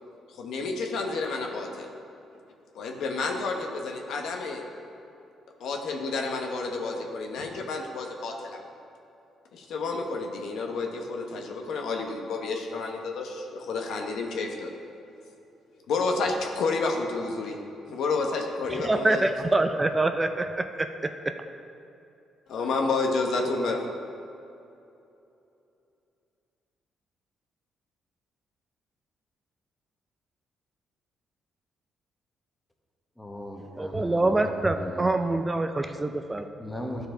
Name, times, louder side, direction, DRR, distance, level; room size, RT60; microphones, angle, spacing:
voice 1, 0.3-1.9 2.7-4.7 5.6-8.6 9.5-14.7 15.9-17.6 17.9-19.2 22.5-23.8, left 3 dB, 75° left, 2 dB, 1.0 m, -30 dB
voice 2, 18.8-20.6 33.8-36.5, right 2 dB, 20° right, 7 dB, 0.4 m, -25 dB
voice 3, 33.2-35.1 36.6-37.1, left 1 dB, 10° left, 2 dB, 1.0 m, -38 dB
12.5 x 4.7 x 3.8 m, 2.7 s
cardioid pair, 90°, 0 cm